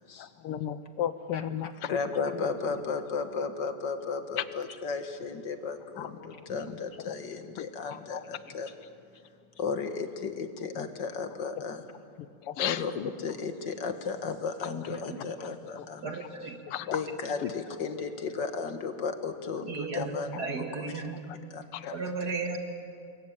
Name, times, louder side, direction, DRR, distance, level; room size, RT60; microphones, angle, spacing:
voice 1, 0.2-1.9 2.3-2.5 4.4-4.5 6.0-6.5 7.6-8.2 10.8-10.9 11.6-11.7 12.2-13.1 15.4-15.5 15.8-15.9 16.7-17.0 17.4-17.5 20.0-20.1 21.7-21.9, left 10 dB, 90° left, 14 dB, 1.8 m, -35 dB
voice 2, 1.9-8.7 9.6-11.8 12.6-12.9 13.2-16.0 16.9-21.0 21.5-22.0, left 5 dB, 55° left, 7 dB, 2.0 m, -34 dB
voice 3, 16.0-16.6 19.7-21.3 21.9-22.6, right 4 dB, 50° right, 5 dB, 2.3 m, -35 dB
27.5 x 22.0 x 8.7 m, 2.3 s
omnidirectional pair, 2.4 m